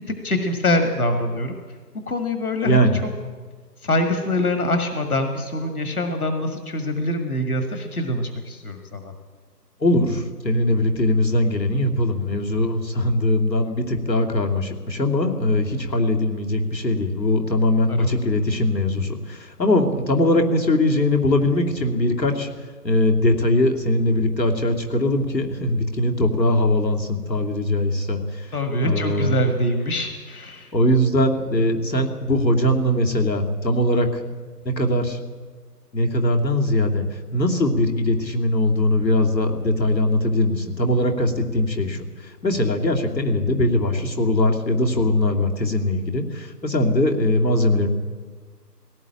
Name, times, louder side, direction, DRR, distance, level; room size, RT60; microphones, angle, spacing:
voice 1, 0.0-1.5 2.1-2.9 3.8-9.1 17.9-18.1 28.5-30.7, left 1 dB, 60° left, 5 dB, 2.0 m, -24 dB
voice 2, 2.6-3.0 9.8-22.5 22.8-28.5 28.8-29.4 30.7-34.2 34.6-35.2 35.9-37.0 37.3-47.9, left 1 dB, 85° left, 2 dB, 3.1 m, -21 dB
18.0 x 18.0 x 8.8 m, 1.5 s
figure-of-eight pair, 175°, 50 cm